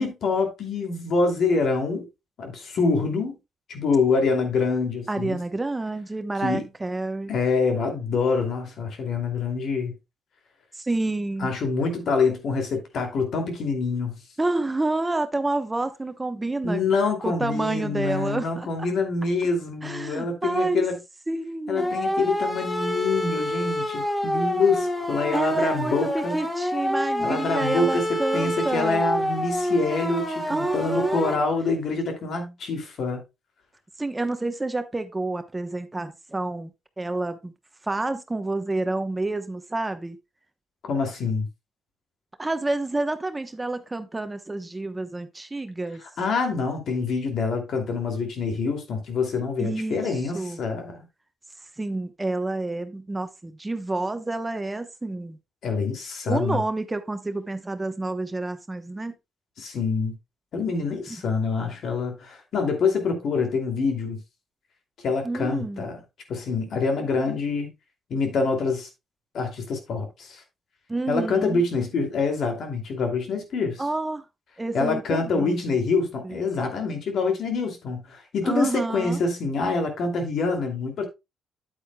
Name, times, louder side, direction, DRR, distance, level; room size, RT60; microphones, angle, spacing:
voice 1, 0.0-2.1 2.4-3.4 3.7-5.4 6.4-6.6 7.3-10.0 11.4-14.2 16.6-21.0 21.7-26.4 27.2-33.2 40.8-41.5 46.0-51.1 55.6-56.6 59.6-60.1 60.5-64.2 65.0-66.0 66.3-67.7 68.1-68.9 69.3-70.4 71.1-73.8 74.7-81.1, left 4 dB, 65° left, 2.6 m, -26 dB
voice 2, 5.1-7.3 10.7-11.5 14.4-16.8 17.2-18.7 19.8-20.8 21.3-21.9 25.3-29.0 30.5-31.4 34.0-36.7 37.0-37.5 37.8-40.2 42.4-46.0 49.6-50.6 51.8-55.4 56.3-59.1 65.2-65.9 70.9-71.6 73.8-74.2 74.6-75.6 76.2-76.3 78.4-79.2, right 2 dB, 15° right, 0.9 m, -28 dB
sound 1, 21.8-31.4, left 1 dB, 15° left, 1.8 m, -28 dB
9.1 x 8.5 x 2.3 m
cardioid pair, 90°, 0 cm